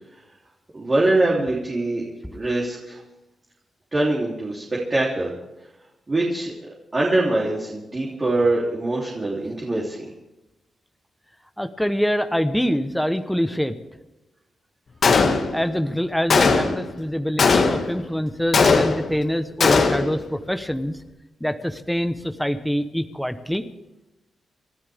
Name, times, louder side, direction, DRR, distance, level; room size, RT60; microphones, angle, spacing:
voice 1, 0.7-2.0 2.3-3.0 3.9-4.6 4.9-5.3 6.1-10.1, right 2 dB, 30° right, -4 dB, 3.3 m, -23 dB
voice 2, 11.6-13.8 15.5-21.0 21.4-23.6, equal, ahead, 8 dB, 1.0 m, -25 dB
Gunshot gunfire, 15.0-15.7 16.3-16.9 17.4-18.0 18.5-19.2 19.6-20.2, left 4 dB, 55° left, 2.0 m, -18 dB
29.5 x 13.0 x 3.6 m, 0.97 s
cardioid pair, 90°, 0 cm